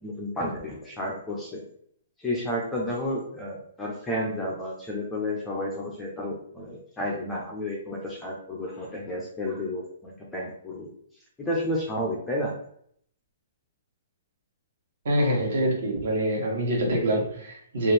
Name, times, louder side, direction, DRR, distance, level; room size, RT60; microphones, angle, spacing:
voice 1, 0.0-1.6 2.2-10.9 11.4-12.5, left 1 dB, 5° left, -3 dB, 0.5 m, -31 dB
voice 2, 15.0-17.9, right 1 dB, 55° right, -1 dB, 1.3 m, -25 dB
4.2 x 2.4 x 3.2 m, 0.66 s
hypercardioid pair, 175°, 0 cm